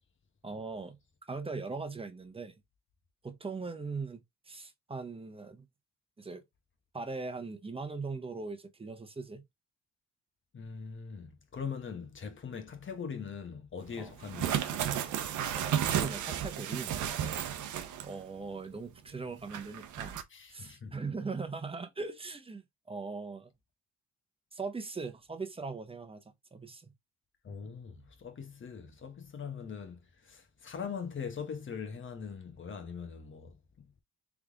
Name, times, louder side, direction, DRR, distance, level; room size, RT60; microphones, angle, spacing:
voice 1, 0.4-1.0 1.3-2.5 3.2-5.6 6.2-6.4 6.9-9.4 14.0-14.1 15.6-16.9 18.0-20.2 20.5-23.5 24.5-26.2 26.5-26.9, right 4 dB, 20° right, 1.0 m, -40 dB
voice 2, 10.5-15.1 20.3-20.9 27.4-33.6, left 6 dB, 40° left, 1.3 m, -41 dB
sound 1, 14.2-18.2 18.5-18.6 19.5-20.2, right 10 dB, 75° right, 0.8 m, -33 dB
3.6 x 3.4 x 3.6 m
cardioid pair, 90°, 30 cm